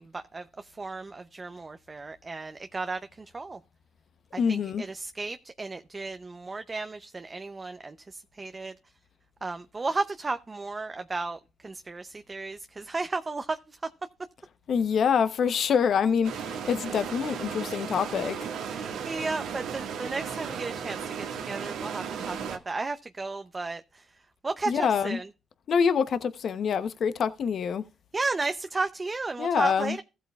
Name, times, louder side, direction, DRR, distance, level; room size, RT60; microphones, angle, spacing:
voice 1, 0.0-3.6 4.3-8.7 9.4-13.9 18.7-24.0 24.4-25.3 28.1-30.0, right 3 dB, 25° right, 0.6 m, -34 dB
voice 2, 4.4-4.8 14.7-18.4 24.7-25.2 25.7-27.8 29.4-30.0, left 6 dB, 60° left, 0.8 m, -26 dB
sound 1, 16.2-22.6, right 7 dB, 85° right, 1.7 m, -35 dB
15.0 x 8.3 x 2.4 m
cardioid pair, 90°, 0 cm